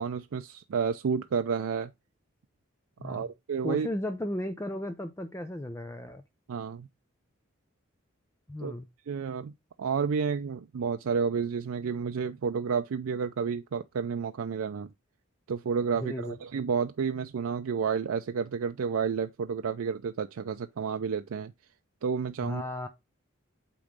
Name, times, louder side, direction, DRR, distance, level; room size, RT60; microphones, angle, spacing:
voice 1, 0.0-1.9 3.0-3.9 6.5-6.9 8.6-8.8 9.1-9.5 9.8-14.9 15.5-21.5 22.0-22.6, right 6 dB, 80° right, 0.4 m, -30 dB
voice 2, 3.0-3.3 3.6-6.2 8.5-8.9 16.0-16.4 22.4-22.9, left 1 dB, 15° left, 0.4 m, -35 dB
8.5 x 3.1 x 5.0 m
head